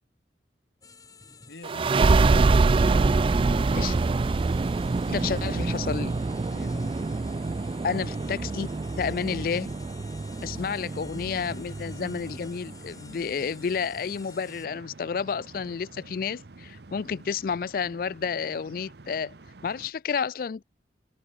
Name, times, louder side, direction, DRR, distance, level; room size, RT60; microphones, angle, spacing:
sound 1, 0.8-14.7, left 5 dB, 20° left, 1.2 m, -51 dB
voice 1, 1.5-2.8 6.5-7.1, left 2 dB, 75° left, 2.0 m, -47 dB
sound 2, 1.6-12.9, right 3 dB, 30° right, 0.3 m, -25 dB
voice 2, 5.1-6.1 7.8-8.7 9.0-9.7 10.4-19.3 19.6-20.6, left 6 dB, 50° left, 0.3 m, -30 dB
sound 3, 6.1-19.9, right 3 dB, 65° right, 0.9 m, -49 dB
head